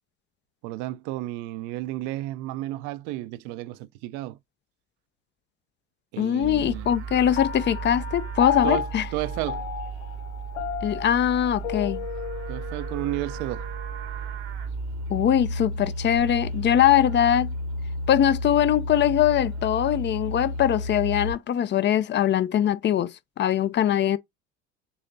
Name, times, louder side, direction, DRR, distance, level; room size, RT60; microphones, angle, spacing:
voice 1, 0.6-4.4 6.1-6.9 8.6-8.9 9.1-9.6 12.5-13.7, right 16 dB, 60° right, 0.6 m, -32 dB
voice 2, 6.2-9.1 10.8-12.0 15.1-17.5 18.1-24.2, left 10 dB, 35° left, 0.5 m, -22 dB
Livestock farm animals working animals, 6.4-21.3, right 1 dB, 80° right, 1.4 m, -33 dB
Piano, 7.4-14.1, left 9 dB, 80° left, 0.7 m, -33 dB
6.9 x 2.8 x 2.6 m
hypercardioid pair, 70°, 33 cm